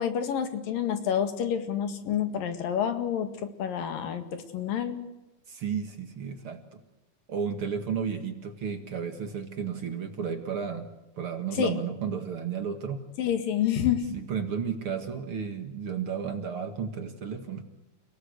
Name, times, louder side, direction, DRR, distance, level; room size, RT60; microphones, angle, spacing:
voice 1, 0.0-3.3 3.6-5.0 11.6-11.8 13.2-14.0, left 9 dB, 85° left, 7 dB, 3.7 m, -28 dB
voice 2, 5.5-6.8 7.3-10.9 11.2-13.0 14.1-17.6, right 7 dB, 45° right, 7 dB, 2.2 m, -33 dB
29.5 x 18.0 x 8.2 m, 1.0 s
omnidirectional pair, 3.9 m